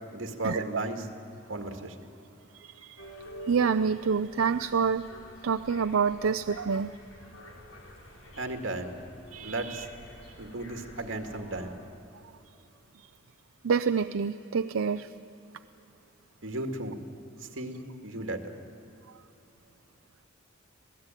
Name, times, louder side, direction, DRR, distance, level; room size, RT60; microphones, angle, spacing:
voice 1, 0.1-1.1 1.5-1.9 8.4-8.9 9.4-9.9 10.4-11.7 16.4-17.0 17.5-18.4, right 2 dB, 70° right, 5 dB, 2.2 m, -35 dB
voice 2, 2.5-3.1 3.5-5.0 5.4-6.9 9.3-9.9 10.2-10.4 13.6-15.1, right 6 dB, 90° right, 9 dB, 0.5 m, -27 dB
sound 1, 3.0-11.7, left 1 dB, 80° left, 4.0 m, -48 dB
26.5 x 17.5 x 9.1 m, 2.8 s
head